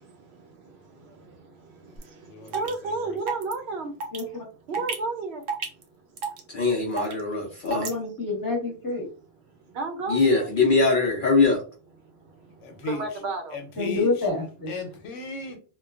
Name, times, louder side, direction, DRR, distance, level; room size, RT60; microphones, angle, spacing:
voice 1, 0.0-4.0 4.7-6.6 9.7-10.5 12.0-13.6, right 3 dB, 65° right, 0.8 m, -34 dB
voice 2, 1.0-1.3 1.8-2.0 2.2-3.2 12.6-13.2 13.5-14.3 14.7-15.6, left 4 dB, 85° left, 1.0 m, -37 dB
sound 1, 2.0-2.1 2.5-2.7 3.3-3.5 4.0-4.2 4.7-5.0 5.5-5.8 6.2-6.4 7.0-7.2 7.7-7.9, right 5 dB, 85° right, 1.0 m, -29 dB
voice 3, 4.1-4.4 7.7-9.1 13.8-14.7, left 3 dB, 20° left, 0.9 m, -28 dB
voice 4, 6.5-7.9 10.1-11.6, left 3 dB, 55° left, 0.6 m, -22 dB
2.9 x 2.2 x 2.3 m
omnidirectional pair, 1.2 m